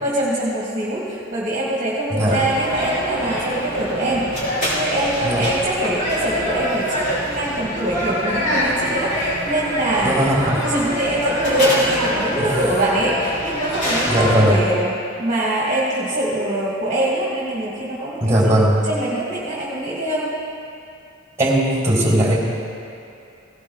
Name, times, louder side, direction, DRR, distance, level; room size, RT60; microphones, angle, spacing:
voice 1, 0.0-10.3 10.6-14.9 15.2-18.6 18.8-20.3, right 1 dB, 35° right, -6 dB, 1.8 m, -23 dB
sound 1, 2.3-14.6, equal, 40° left, 3.6 m, -25 dB
voice 2, 10.0-10.7 12.4-12.5 14.1-14.6 18.2-18.8 21.4-22.4, right 1 dB, 15° right, -3 dB, 3.0 m, -18 dB
17.0 x 17.0 x 2.3 m, 2.5 s
head